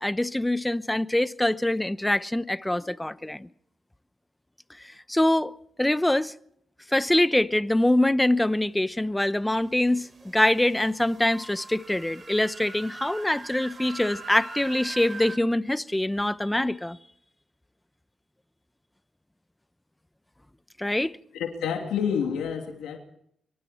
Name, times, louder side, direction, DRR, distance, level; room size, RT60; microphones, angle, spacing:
voice 1, 0.0-3.5 4.8-5.5 5.8-6.3 6.9-10.1 10.3-17.0 20.8-21.1, left 1 dB, 10° left, 0.9 m, -24 dB
sound 1, 10.3-15.4, right 3 dB, 45° right, 5.1 m, -42 dB
voice 2, 21.3-23.0, left 7 dB, 85° left, 2.9 m, -28 dB
24.5 x 24.0 x 4.5 m
supercardioid pair, 60°, 0 cm